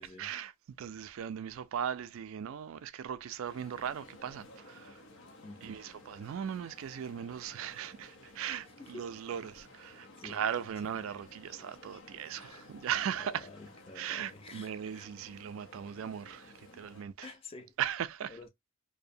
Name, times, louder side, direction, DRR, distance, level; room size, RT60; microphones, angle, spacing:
voice 1, 0.0-5.0 5.6-13.5 13.9-17.3 17.8-18.4, right 9 dB, 70° right, 0.3 m, -38 dB
sound 1, 3.5-17.0, left 2 dB, 75° left, 0.7 m, -55 dB
voice 2, 5.4-5.7 8.8-9.1 10.2-10.4 12.3-12.7 13.1-15.1 17.2-17.8 18.3-18.5, left 3 dB, 25° left, 0.4 m, -49 dB
2.7 x 2.1 x 2.5 m
head